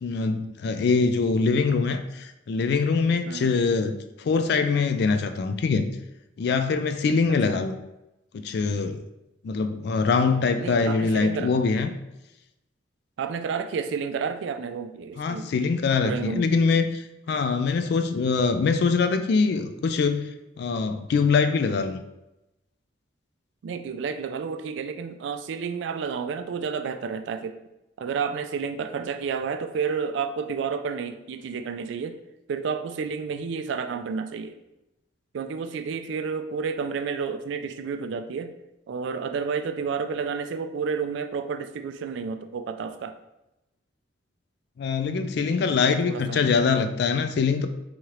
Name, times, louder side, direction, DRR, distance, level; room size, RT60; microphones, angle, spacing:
voice 1, 0.0-5.9 6.4-7.7 8.3-9.0 9.4-11.9 15.2-20.3 20.6-22.0 44.8-47.7, left 4 dB, 55° left, 9 dB, 0.3 m, -23 dB
voice 2, 3.3-3.6 7.5-7.6 10.6-11.5 13.2-15.5 16.0-16.5 23.6-27.6 28.0-32.2 32.5-34.6 35.3-38.5 38.9-43.1 45.8-46.4, right 5 dB, 70° right, 9 dB, 0.3 m, -30 dB
3.6 x 3.1 x 3.0 m, 0.92 s
head